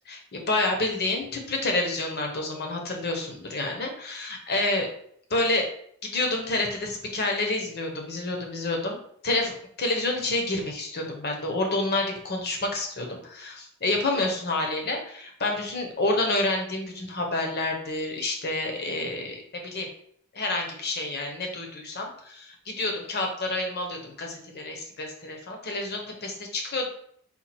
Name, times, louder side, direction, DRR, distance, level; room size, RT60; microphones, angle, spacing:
voice 1, 0.1-4.9 5.3-5.6 6.1-9.0 9.2-19.4 19.7-19.9 20.3-26.9, left 2 dB, 50° left, 3 dB, 0.9 m, -28 dB
4.3 x 2.4 x 4.3 m, 0.64 s
head